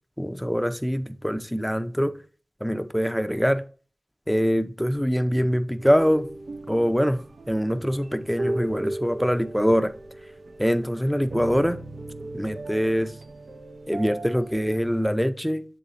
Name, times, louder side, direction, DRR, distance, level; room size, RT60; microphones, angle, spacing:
voice 1, 0.2-2.2 2.6-3.6 4.3-6.3 6.7-9.9 10.6-11.8 12.3-13.2 13.9-15.6, equal, ahead, 0.5 m, -24 dB
sound 1, 5.8-15.1, right 1 dB, 85° right, 0.6 m, -37 dB
7.3 x 3.9 x 4.0 m
wide cardioid pair, 60°, 0 cm